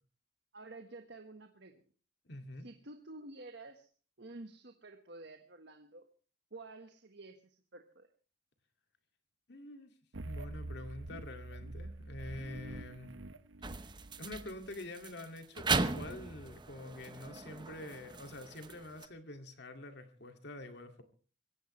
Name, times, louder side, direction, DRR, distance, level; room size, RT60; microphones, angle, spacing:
voice 1, 0.5-1.8 2.6-3.9 4.2-6.1 6.5-8.1, right 2 dB, 60° right, 5 dB, 1.4 m, -50 dB
voice 2, 2.2-2.7 9.5-9.9 10.2-13.1 14.2-21.0, left 1 dB, 60° left, 7 dB, 2.2 m, -46 dB
sound 1, 10.1-14.3, right 2 dB, 80° right, 1.0 m, -45 dB
sound 2, 13.6-19.1, right 3 dB, 25° right, 0.9 m, -38 dB
25.5 x 16.0 x 3.2 m, 0.38 s
head